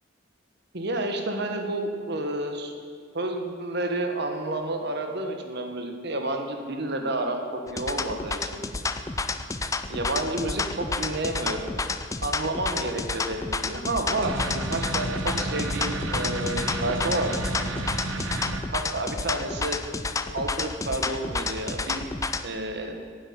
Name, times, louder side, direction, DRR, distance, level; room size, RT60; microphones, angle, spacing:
voice 1, 0.7-2.7 3.1-8.6 9.9-11.8 12.2-14.4 14.7-17.3 18.7-19.8 20.3-22.1 22.4-23.0, right 2 dB, 60° right, 4 dB, 1.3 m, -30 dB
sound 1, 7.7-22.5, left 3 dB, 15° left, 0.4 m, -30 dB
sound 2, 14.2-18.6, right 2 dB, 85° right, 1.0 m, -31 dB
9.5 x 8.1 x 9.3 m, 2.1 s
head